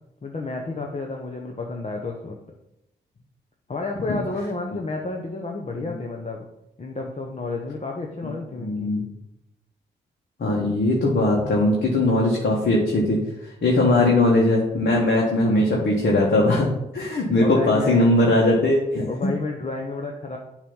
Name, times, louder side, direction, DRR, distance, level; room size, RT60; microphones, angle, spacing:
voice 1, 0.2-2.4 3.7-6.5 6.8-8.9 13.7-14.1 16.9-17.0 17.4-18.1 19.1-20.4, left 3 dB, 35° left, 0 dB, 1.0 m, -31 dB
voice 2, 8.6-9.0 10.4-16.7 16.9-19.1, left 2 dB, 55° left, -3 dB, 1.6 m, -20 dB
7.2 x 3.2 x 5.6 m, 0.85 s
supercardioid pair, 45°, 21 cm